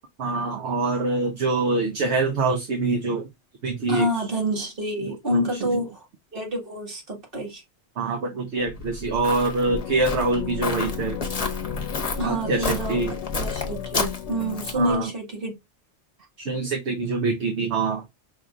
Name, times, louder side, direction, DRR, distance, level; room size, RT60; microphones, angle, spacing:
voice 1, 0.2-3.3 3.6-4.1 5.3-5.8 8.0-11.3 12.2-13.1 14.7-15.1 16.4-18.0, right 3 dB, 70° right, 1.1 m, -25 dB
voice 2, 3.9-6.0 6.3-7.6 12.2-13.0 13.3-15.5, equal, 50° right, 2.2 m, -27 dB
Walk footsteps, 8.7-14.9, left 3 dB, 35° left, 0.9 m, -31 dB
sound 1, 9.7-14.8, left 12 dB, 80° left, 0.9 m, -35 dB
5.6 x 3.2 x 2.4 m
omnidirectional pair, 1.2 m